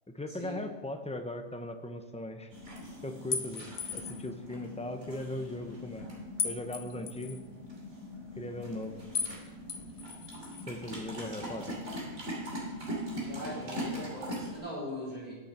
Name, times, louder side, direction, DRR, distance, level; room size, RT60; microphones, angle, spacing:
voice 1, 0.1-2.5 3.0-6.1 6.4-7.4 8.4-9.0 10.7-11.8, left 1 dB, 5° left, 6 dB, 0.7 m, -39 dB
sound 1, 2.5-14.6, equal, 70° right, 3.2 m, -41 dB
sound 2, 3.3-4.3 6.4-7.4 9.1-9.4 9.7-10.6, left 7 dB, 65° left, 1.3 m, -36 dB
voice 2, 13.2-15.3, equal, 35° right, -8 dB, 4.7 m, -40 dB
19.5 x 6.5 x 4.4 m, 1.3 s
omnidirectional pair, 1.3 m